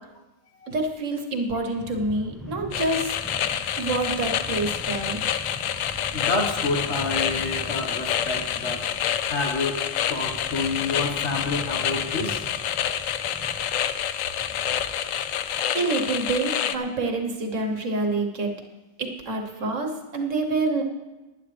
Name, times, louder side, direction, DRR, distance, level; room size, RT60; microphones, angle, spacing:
voice 1, 0.7-3.1 3.8-5.2 15.7-18.5 19.0-20.8, right 2 dB, 70° right, 3 dB, 1.6 m, -27 dB
sound 1, 1.8-15.6, equal, ahead, 0.9 m, -41 dB
sound 2, 2.7-16.8, left 10 dB, 80° left, 1.0 m, -28 dB
voice 2, 6.1-8.9 9.3-9.8 10.1-12.4 19.6-19.7, left 3 dB, 55° left, 2 dB, 1.7 m, -28 dB
19.0 x 10.5 x 3.3 m, 1.1 s
omnidirectional pair, 1.4 m